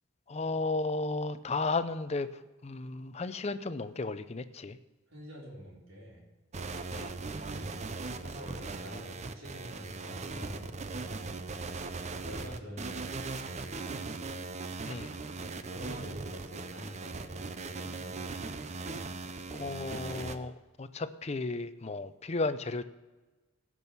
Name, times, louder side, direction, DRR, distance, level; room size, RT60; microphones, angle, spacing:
voice 1, 0.3-4.8 6.9-7.1 14.8-15.1 19.5-22.8, left 3 dB, 30° left, 12 dB, 0.5 m, -34 dB
voice 2, 5.1-6.2 7.4-7.9 8.2-11.4 12.2-13.7 15.6-17.3 17.6-18.6, equal, 75° right, -3 dB, 4.0 m, -46 dB
sound 1, 6.5-20.4, right 3 dB, 35° right, 0.6 m, -39 dB
16.5 x 6.3 x 6.9 m, 1.2 s
head